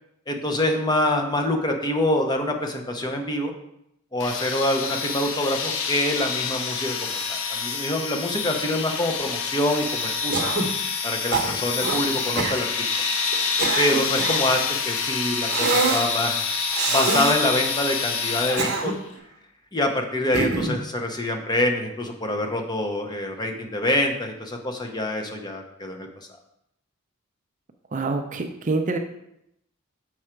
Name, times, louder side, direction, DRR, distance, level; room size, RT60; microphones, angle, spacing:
voice 1, 0.3-3.5 4.1-10.5 11.0-12.9 13.8-16.4 16.9-18.9 19.7-26.1, left 1 dB, 20° left, 3 dB, 0.8 m, -25 dB
sound 1, 4.2-19.0, left 5 dB, 60° left, 0.7 m, -27 dB
Cough, 10.3-10.8 11.3-12.0 12.4-12.6 13.3-14.5 15.5-16.1 16.7-17.4 18.3-19.2 20.3-20.8, right 4 dB, 55° right, 1.0 m, -25 dB
voice 2, 27.9-29.0, right 3 dB, 35° right, 5 dB, 0.5 m, -26 dB
6.3 x 4.8 x 4.4 m, 0.79 s
head